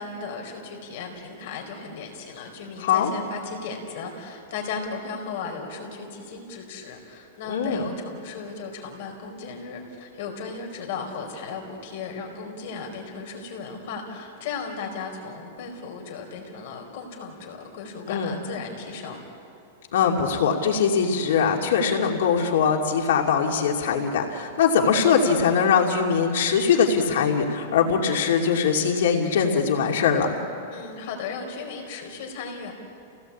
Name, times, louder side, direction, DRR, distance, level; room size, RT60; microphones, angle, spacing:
voice 1, 0.0-19.2 30.7-32.7, left 5 dB, 50° left, 2 dB, 4.8 m, -36 dB
voice 2, 2.8-3.1 7.5-7.8 18.1-18.3 19.9-30.4, left 6 dB, 70° left, 1 dB, 2.7 m, -22 dB
29.5 x 18.0 x 8.6 m, 2.6 s
supercardioid pair, 170°, 0 cm